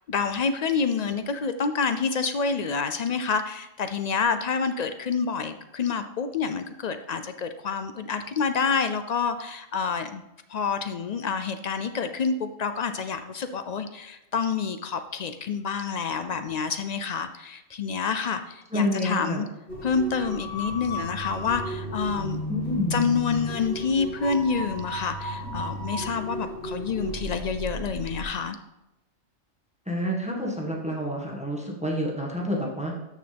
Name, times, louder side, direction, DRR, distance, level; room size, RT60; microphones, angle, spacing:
voice 1, 0.1-10.2 10.5-19.4 19.8-22.4 22.9-28.6, left 5 dB, 80° left, 9 dB, 0.3 m, -28 dB
voice 2, 18.7-19.4 22.5-23.0 29.9-32.9, equal, 5° right, -2 dB, 1.6 m, -28 dB
sound 1, 19.7-28.2, equal, 55° left, 2.1 m, -34 dB
13.0 x 6.5 x 3.4 m, 0.94 s
omnidirectional pair, 1.3 m